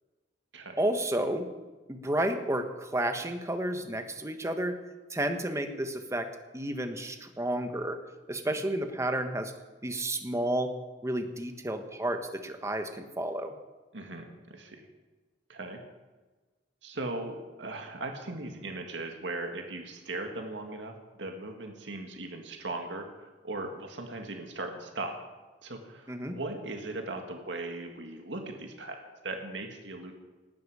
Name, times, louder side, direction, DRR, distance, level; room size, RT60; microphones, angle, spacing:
voice 1, 0.8-1.5 1.9-4.8 5.1-8.0 8.3-9.5 9.8-10.7 11.0-13.5 26.1-26.4, right 1 dB, 15° right, 7 dB, 1.3 m, -31 dB
voice 2, 13.9-14.9 15.5-15.8 16.8-25.2 25.6-30.1, right 2 dB, 90° right, 4 dB, 1.9 m, -38 dB
18.5 x 12.5 x 4.9 m, 1.3 s
head